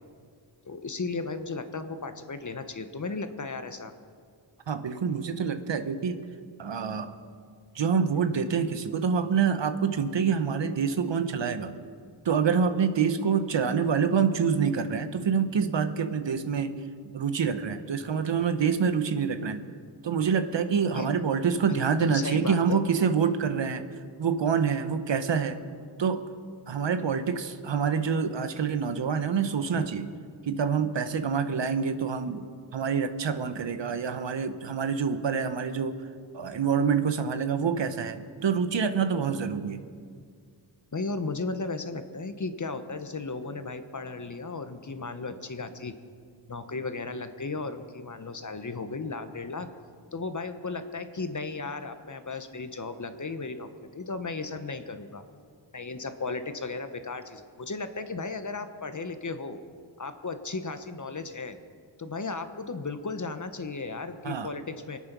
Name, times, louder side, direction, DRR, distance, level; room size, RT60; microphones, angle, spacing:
voice 1, 0.6-3.9 20.9-21.1 21.7-22.8 40.9-45.9 46.5-49.7 50.1-55.2 55.7-59.6 60.0-61.6 62.0-65.0, left 3 dB, 40° left, 9 dB, 1.1 m, -35 dB
voice 2, 4.7-6.2 6.6-7.2 7.7-11.8 12.2-16.8 17.1-19.6 20.0-23.8 24.2-25.6 26.0-26.2 26.7-30.1 30.4-36.0 36.3-39.8 64.2-64.5, right 6 dB, 70° right, 9 dB, 1.0 m, -26 dB
23.5 x 8.5 x 6.1 m, 2.1 s
wide cardioid pair, 65°, 46 cm